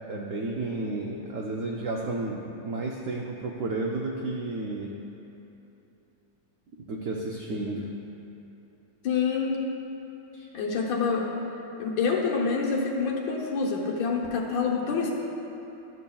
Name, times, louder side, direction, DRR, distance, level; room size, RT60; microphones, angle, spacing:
voice 1, 0.1-5.0 6.8-7.9 10.3-10.5, right 2 dB, 85° right, 0 dB, 0.7 m, -32 dB
voice 2, 9.0-9.6 10.5-11.3 11.8-15.1, left 5 dB, 80° left, -2 dB, 1.7 m, -27 dB
12.0 x 7.0 x 2.3 m, 3.0 s
omnidirectional pair, 2.0 m